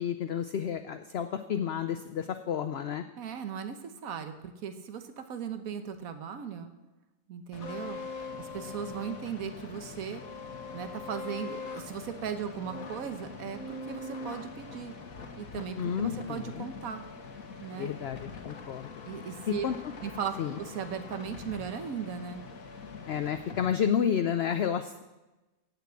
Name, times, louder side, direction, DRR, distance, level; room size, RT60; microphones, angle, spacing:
voice 1, 0.0-3.0 15.8-16.7 17.7-18.9 19.5-19.7 20.4-20.6 23.1-25.0, left 8 dB, 60° left, 9 dB, 0.7 m, -31 dB
voice 2, 3.2-6.7 7.3-8.0 8.4-10.2 10.7-14.9 15.3-17.0 17.6-17.9 19.1-19.6 20.0-22.4, right 7 dB, 80° right, 8 dB, 1.4 m, -37 dB
sound 1, 7.5-23.7, left 4 dB, 75° left, 1.7 m, -43 dB
16.0 x 5.9 x 8.2 m, 1.1 s
omnidirectional pair, 1.5 m